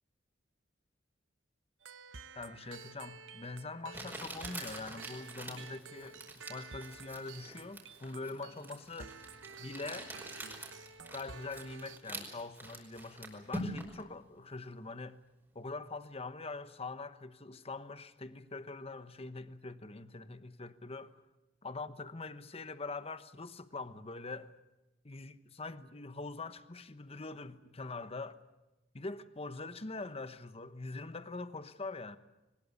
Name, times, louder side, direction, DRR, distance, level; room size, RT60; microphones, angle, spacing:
sound 1, 1.8-12.0, right 5 dB, 80° right, 1.0 m, -51 dB
voice 1, 2.3-9.1 9.6-10.1 11.1-15.2 15.5-21.2 21.6-24.5 25.0-28.4 28.9-32.2, left 3 dB, 30° left, 1.1 m, -43 dB
Crumpling crinkling, 3.0-3.1 3.9-14.0, right 1 dB, 10° right, 5.3 m, -45 dB
22.5 x 20.5 x 8.5 m
head